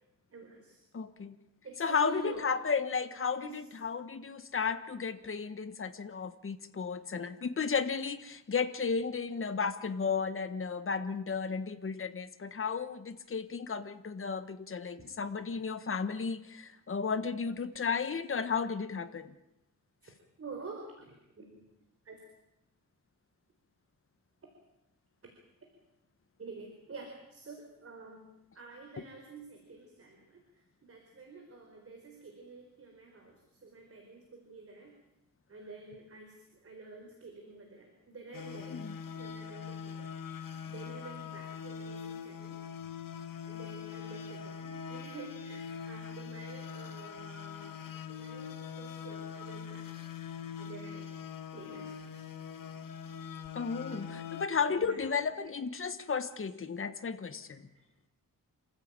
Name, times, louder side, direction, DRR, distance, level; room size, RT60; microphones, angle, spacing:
voice 1, 0.3-0.8 1.6-2.5 3.4-3.6 14.9-15.0 18.7-18.8 20.4-21.6 22.0-22.2 26.4-28.3 28.5-35.0 35.5-40.1 40.6-42.7 43.4-49.9 50.6-51.1 51.5-52.2 53.9-54.1 54.7-55.5, right 4 dB, 45° right, 2 dB, 4.5 m, -49 dB
voice 2, 0.9-1.4 1.8-19.3 38.7-39.0 53.5-57.7, left 5 dB, 40° left, 10 dB, 1.4 m, -34 dB
sound 1, 38.3-54.5, left 7 dB, 75° left, 1.6 m, -43 dB
27.5 x 15.0 x 8.9 m, 0.90 s
wide cardioid pair, 125°, 34 cm